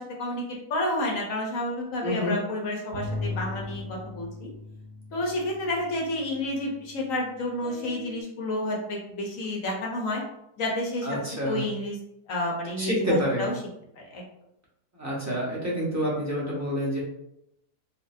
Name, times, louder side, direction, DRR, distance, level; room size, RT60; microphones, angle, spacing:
voice 1, 0.0-3.8 4.1-4.3 5.1-10.2 10.6-11.2 11.5-12.0 12.3-13.5 14.0-14.2, left 1 dB, 60° left, -1 dB, 1.1 m, -30 dB
voice 2, 2.0-2.4 11.0-11.6 12.8-13.4 14.9-17.0, equal, 15° right, -6 dB, 0.8 m, -27 dB
sound 1, 2.9-7.0 7.6-8.2, left 3 dB, 75° right, 1.2 m, -38 dB
4.2 x 2.6 x 2.6 m, 0.79 s
omnidirectional pair, 1.8 m